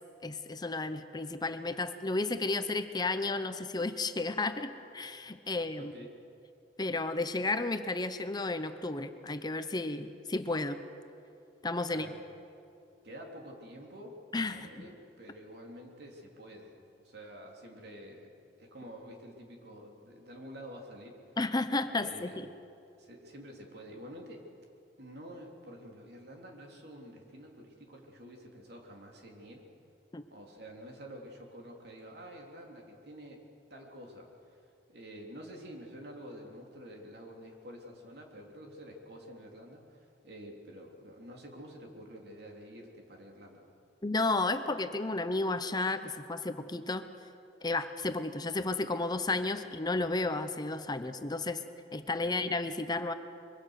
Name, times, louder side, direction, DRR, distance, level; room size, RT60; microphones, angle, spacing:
voice 1, 0.2-5.9 6.8-10.8 11.6-12.1 14.3-14.9 21.4-22.5 30.1-30.2 44.0-47.1 47.6-51.6 51.9-53.1, left 2 dB, 25° left, 9 dB, 0.8 m, -32 dB
voice 2, 5.5-6.1 11.9-12.2 13.0-14.2 14.5-18.3 18.6-21.4 21.9-22.4 23.0-24.4 25.0-29.6 30.3-33.5 33.7-43.7 52.2-52.3, equal, 65° right, 1 dB, 3.5 m, -49 dB
24.0 x 23.0 x 6.6 m, 2.7 s
head